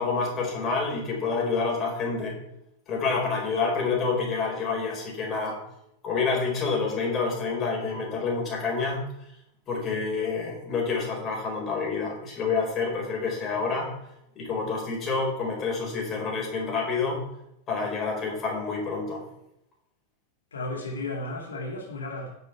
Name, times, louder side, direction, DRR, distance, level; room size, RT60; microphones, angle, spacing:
voice 1, 0.0-2.4 2.9-5.6 6.0-9.0 9.7-13.9 14.4-17.2 17.7-19.2, left 4 dB, 30° left, 4.5 m, -28 dB
voice 2, 20.5-22.3, left 2 dB, 70° left, 2.2 m, -34 dB
10.0 x 6.6 x 5.9 m
figure-of-eight pair, 90°, 0 cm